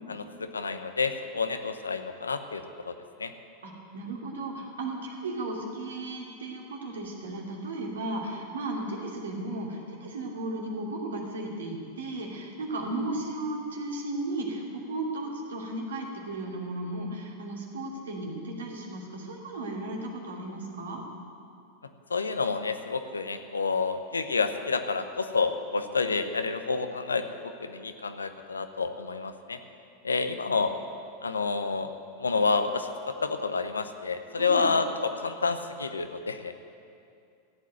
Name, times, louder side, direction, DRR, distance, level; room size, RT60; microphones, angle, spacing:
voice 1, 0.1-2.9 3.2-3.3 22.1-29.6 30.0-30.7 31.2-31.9 32.2-36.5, left 4 dB, 85° left, 9 dB, 0.9 m, -29 dB
voice 2, 3.6-21.0 34.4-34.7, right 2 dB, 75° right, 0 dB, 2.7 m, -35 dB
14.0 x 8.5 x 9.2 m, 2.4 s
figure-of-eight pair, 90°, 0 cm